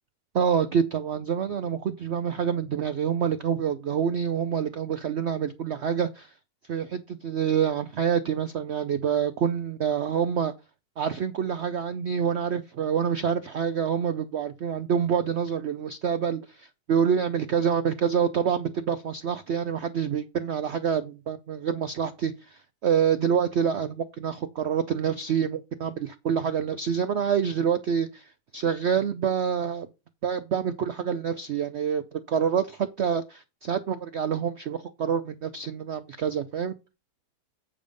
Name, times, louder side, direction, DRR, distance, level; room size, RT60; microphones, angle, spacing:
voice 1, 0.3-6.3 6.7-10.5 11.0-29.9 30.2-36.7, right 7 dB, 85° right, 11 dB, 0.5 m, -27 dB
8.7 x 5.1 x 5.2 m, 0.29 s
omnidirectional pair, 1.9 m